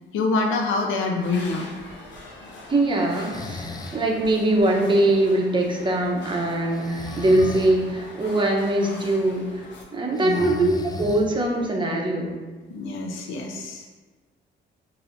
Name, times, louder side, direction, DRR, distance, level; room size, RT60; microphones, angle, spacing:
voice 1, 0.1-1.7 10.2-10.7 12.7-14.0, left 3 dB, 85° left, 2 dB, 0.7 m, -26 dB
sound 1, 1.2-9.8, left 1 dB, 65° left, 1.0 m, -42 dB
voice 2, 2.7-9.5 9.9-12.4, right 1 dB, 25° right, 0 dB, 0.9 m, -22 dB
Breathing, 3.1-4.0 6.7-7.8 10.1-11.5, left 3 dB, 20° left, 0.4 m, -35 dB
6.9 x 2.8 x 2.6 m, 1.3 s
cardioid pair, 90°, 20 cm